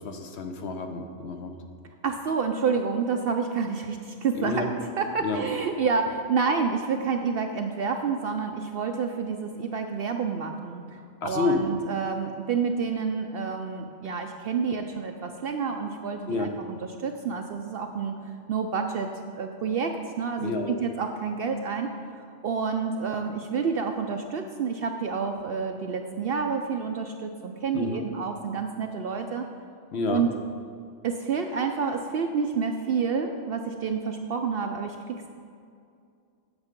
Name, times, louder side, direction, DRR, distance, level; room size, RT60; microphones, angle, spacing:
voice 1, 0.0-1.5 4.3-4.6 5.2-5.4 11.2-11.6 16.3-16.5 20.4-20.8 27.7-28.0 29.9-30.2, left 4 dB, 60° left, 5 dB, 0.9 m, -29 dB
voice 2, 2.0-4.7 5.0-18.1 18.5-19.1 19.4-21.9 22.2-29.4 30.1-30.3 31.0-35.3, right 5 dB, 60° right, 5 dB, 0.6 m, -29 dB
8.2 x 7.0 x 5.2 m, 2.4 s
omnidirectional pair, 1.3 m